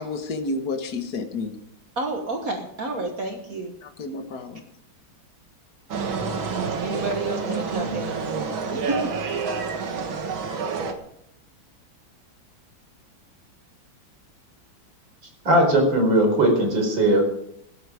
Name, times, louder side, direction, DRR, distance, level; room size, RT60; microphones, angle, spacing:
voice 1, 0.0-1.6 3.8-4.7, left 3 dB, 55° left, 6 dB, 2.0 m, -30 dB
voice 2, 2.0-3.8 6.8-9.2, right 2 dB, 50° right, 4 dB, 1.7 m, -30 dB
sound 1, 5.9-10.9, right 5 dB, 85° right, 2.5 m, -28 dB
voice 3, 15.5-17.2, right 1 dB, 70° right, 3 dB, 5.1 m, -19 dB
16.5 x 13.0 x 5.0 m, 0.76 s
omnidirectional pair, 2.1 m